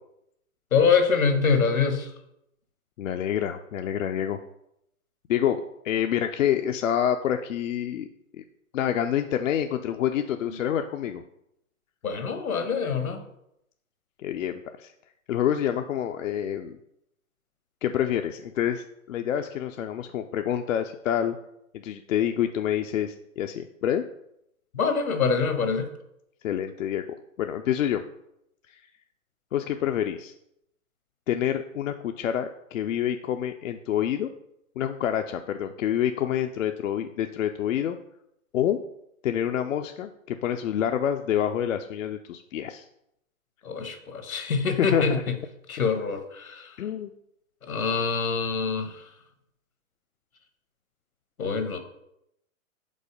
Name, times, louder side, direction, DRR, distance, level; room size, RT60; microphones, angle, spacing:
voice 1, 0.7-2.1 12.0-13.2 24.7-25.9 43.6-45.3 45.7-46.7 47.6-49.0 51.4-51.8, left 5 dB, 85° left, 7 dB, 1.2 m, -25 dB
voice 2, 3.0-4.4 5.3-8.1 8.4-8.5 8.7-11.2 14.2-14.9 15.3-16.8 17.8-21.4 21.7-24.0 26.4-27.0 27.4-28.0 28.7-28.8 29.5-30.3 31.3-34.3 34.8-38.0 38.5-38.8 39.2-42.9 44.8-45.2 46.8-47.1, left 10 dB, 65° left, 6 dB, 0.5 m, -27 dB
5.4 x 3.9 x 5.1 m, 0.79 s
hypercardioid pair, 125°, 42 cm